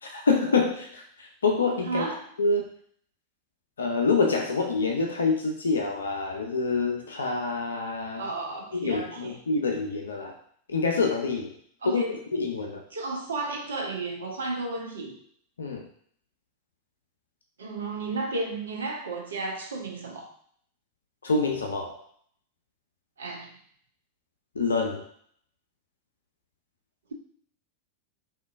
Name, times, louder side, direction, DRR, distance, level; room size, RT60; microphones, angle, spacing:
voice 1, 0.0-2.1 2.4-2.7 3.8-8.3 8.7-10.4 10.7-11.5 11.8-12.0 12.3-12.8 15.6-15.9 21.2-22.0 24.5-25.1, left 4 dB, 70° left, 2 dB, 0.4 m, -26 dB
voice 2, 1.9-2.2 8.2-9.4 11.8-12.2 12.9-15.2 17.6-20.3 23.2-23.5, right 3 dB, 70° right, 2 dB, 0.5 m, -33 dB
3.4 x 2.5 x 2.4 m, 0.62 s
figure-of-eight pair, 90°, 0 cm